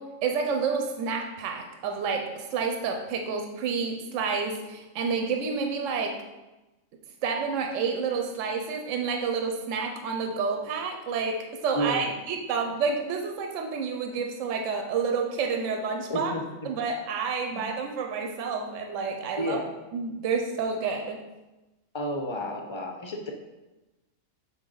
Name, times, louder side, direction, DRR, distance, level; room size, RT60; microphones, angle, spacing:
voice 1, 0.0-6.2 7.2-16.3 16.6-19.6 19.9-21.2, right 5 dB, 75° right, 3 dB, 1.0 m, -29 dB
voice 2, 11.7-12.1 16.1-16.4 17.5-17.6 19.4-19.7 21.9-23.3, equal, 40° left, 2 dB, 0.4 m, -31 dB
5.9 x 4.6 x 3.8 m, 1.1 s
omnidirectional pair, 1.4 m